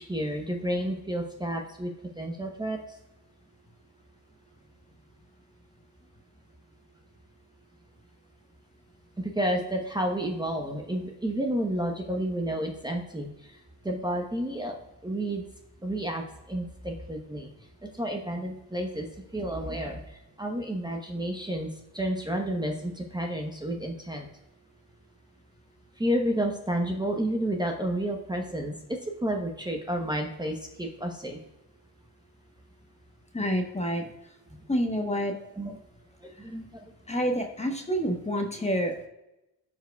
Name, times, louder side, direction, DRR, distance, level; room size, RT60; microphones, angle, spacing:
voice 1, 0.0-1.9 2.2-2.8 9.2-13.6 13.8-14.7 15.0-15.4 15.8-17.5 17.8-19.1 19.3-24.3 26.0-31.4 35.5-35.8 36.2-36.9, right 1 dB, 10° right, 1 dB, 0.9 m, -31 dB
voice 2, 33.3-34.0 34.7-35.3 37.1-38.9, equal, 15° left, 4 dB, 1.0 m, -28 dB
12.5 x 4.7 x 2.3 m, 0.91 s
cardioid pair, 95°, 39 cm